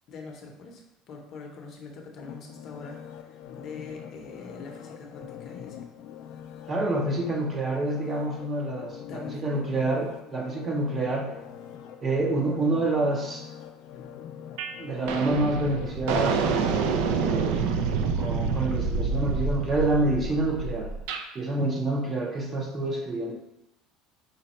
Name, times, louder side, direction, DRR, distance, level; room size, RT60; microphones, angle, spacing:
voice 1, 0.1-5.8 9.1-9.5, left 4 dB, 40° left, 1 dB, 0.7 m, -43 dB
sound 1, 2.2-17.2 17.7-17.8, left 9 dB, 60° left, 0.4 m, -44 dB
voice 2, 6.7-11.3 12.0-13.4 14.8-16.9 17.2-17.7 18.1-20.9 21.3-23.3, right 2 dB, 20° right, 1 dB, 0.5 m, -27 dB
sound 2, 14.6-14.8 15.1-21.3, right 5 dB, 75° right, 0.4 m, -27 dB
5.1 x 2.2 x 4.1 m, 0.86 s
cardioid pair, 160°, 0 cm